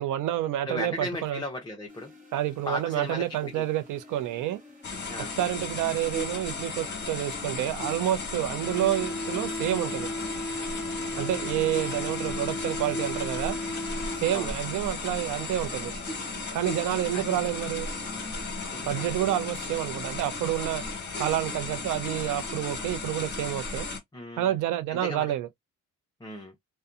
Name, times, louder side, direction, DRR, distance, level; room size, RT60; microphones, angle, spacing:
voice 1, 0.0-1.4 2.3-4.6 5.2-10.1 11.2-13.6 14.2-15.9 16.5-17.9 18.9-20.8 21.2-23.9 24.4-25.5, right 12 dB, 85° right, 0.6 m, -29 dB
voice 2, 0.7-2.1 2.7-3.6 5.1-5.3 8.7-8.8 11.1-11.4 14.3-14.5 17.1-17.4 18.7-19.4 24.1-24.5 24.9-25.3 26.2-26.5, left 1 dB, 15° left, 0.6 m, -37 dB
sound 1, 1.9-19.1, left 1 dB, 25° right, 1.3 m, -53 dB
sound 2, 4.8-24.0, left 3 dB, 35° left, 1.2 m, -35 dB
sound 3, 8.6-14.6, left 1 dB, 5° right, 0.9 m, -35 dB
2.7 x 2.2 x 2.3 m
cardioid pair, 90°, 30 cm